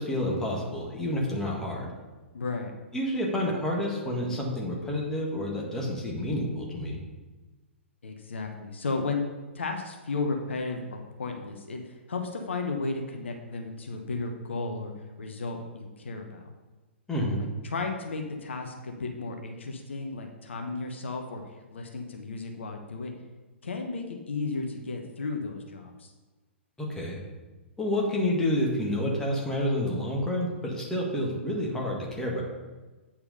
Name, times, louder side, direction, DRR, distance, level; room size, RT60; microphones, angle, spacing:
voice 1, 0.0-1.9 2.9-7.0 17.1-17.4 26.8-27.2 27.8-32.4, left 1 dB, 10° left, -3 dB, 1.7 m, -29 dB
voice 2, 2.3-2.7 8.0-9.2 9.5-14.9 15.2-16.5 17.6-23.1 23.6-26.1, left 3 dB, 65° left, 3 dB, 1.0 m, -34 dB
8.8 x 4.7 x 5.5 m, 1.2 s
figure-of-eight pair, 115°, 7 cm